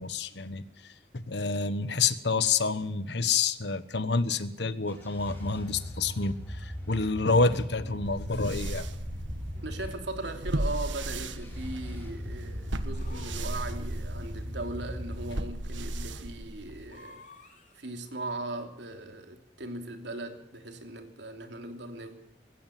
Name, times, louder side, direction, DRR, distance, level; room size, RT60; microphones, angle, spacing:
voice 1, 0.0-8.9, left 4 dB, 65° left, 14 dB, 1.2 m, -28 dB
sound 1, 4.9-9.9 11.0-15.3, equal, 10° left, 4.0 m, -40 dB
sound 2, 6.6-6.7 7.6-8.3 9.5-10.3 12.9-14.0 16.9-18.0, left 2 dB, 40° left, 3.1 m, -53 dB
sound 3, 8.0-17.0, right 1 dB, 85° right, 1.5 m, -36 dB
voice 2, 9.6-17.2 17.7-22.2, right 2 dB, 70° right, 5 dB, 3.1 m, -39 dB
20.0 x 17.0 x 9.3 m, 0.79 s
head